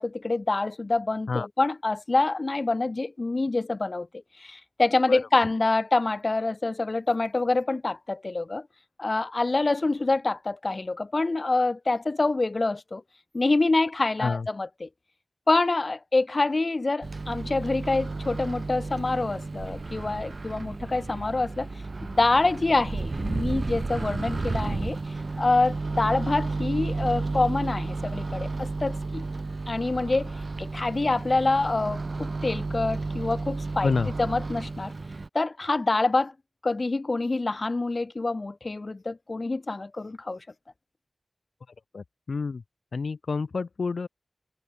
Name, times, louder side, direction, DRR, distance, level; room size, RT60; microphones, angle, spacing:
voice 1, 0.0-8.7 9.0-13.0 13.3-14.9 15.5-21.7 22.0-25.0 25.4-29.3 29.7-30.3 30.6-33.9 34.2-34.9 35.3-36.3 36.6-40.4, left 3 dB, 45° left, 0.7 m, -26 dB
Microwave oven, 17.0-35.3, right 3 dB, 55° right, 1.5 m, -32 dB
voice 2, 33.8-34.1 41.9-42.6 42.9-44.1, left 4 dB, 85° left, 5.1 m, -28 dB
wide cardioid pair, 85°, 0 cm